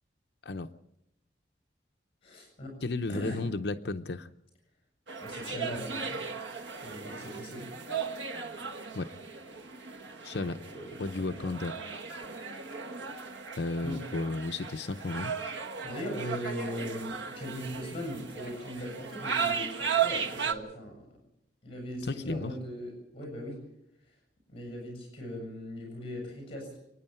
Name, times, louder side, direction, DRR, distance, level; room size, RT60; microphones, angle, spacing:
voice 1, 2.2-2.7 3.1-3.4 5.2-6.2 6.8-7.7 10.7-11.5 13.8-14.0 15.8-20.9 21.6-23.6 24.5-26.8, equal, 30° left, 2 dB, 7.4 m, -39 dB
voice 2, 2.8-4.3 8.9-9.1 10.2-10.6 11.0-11.7 13.6-15.3 22.0-22.5, left 2 dB, 60° left, 8 dB, 0.7 m, -33 dB
sound 1, 5.1-20.5, right 6 dB, 85° right, 1.7 m, -36 dB
29.5 x 9.9 x 9.0 m, 0.81 s
head